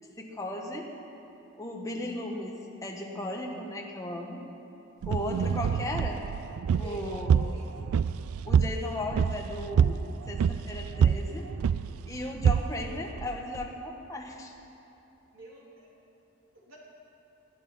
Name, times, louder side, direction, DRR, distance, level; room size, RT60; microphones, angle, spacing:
voice 1, 0.2-0.9 1.6-4.4 5.1-6.2 6.8-7.3 8.4-11.5 12.1-14.5, left 1 dB, 15° left, 0 dB, 1.3 m, -36 dB
sound 1, 5.0-13.7, right 7 dB, 85° right, 0.3 m, -27 dB
voice 2, 6.8-7.7 15.3-15.9 16.5-16.8, right 1 dB, 65° right, -4 dB, 3.4 m, -46 dB
20.5 x 11.0 x 5.6 m, 3.0 s
head